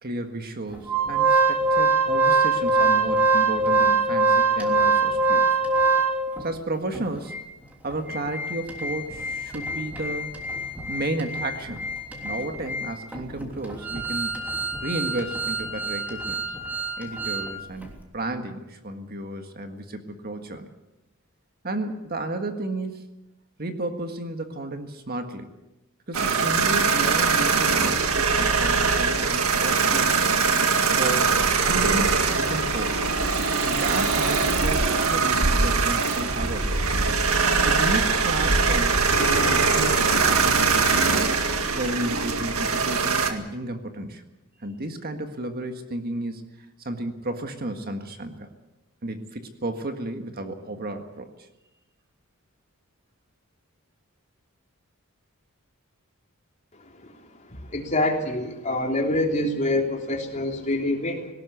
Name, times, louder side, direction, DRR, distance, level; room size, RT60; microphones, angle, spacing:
voice 1, 0.0-5.5 6.4-7.4 7.8-10.3 10.9-11.9 12.2-14.4 14.8-16.4 17.0-20.7 21.6-23.1 23.6-25.5 26.1-30.3 30.9-31.4 31.6-33.0 33.6-36.8 37.6-39.0 39.4-41.2 41.7-44.2 44.6-46.4 46.8-48.5 49.0-51.3, right 2 dB, 45° right, 6 dB, 1.7 m, -32 dB
Organ, 0.9-6.4 6.9-7.0 7.3-7.4 7.9-17.5 17.8-17.9, right 3 dB, 10° right, 3.2 m, -24 dB
sound 1, 26.1-43.3, right 4 dB, 70° right, 1.9 m, -22 dB
Tools, 32.3-41.2, left 3 dB, 80° left, 2.4 m, -36 dB
voice 2, 57.5-61.3, left 1 dB, 35° left, 1 dB, 3.4 m, -26 dB
19.0 x 18.0 x 8.3 m, 0.97 s
head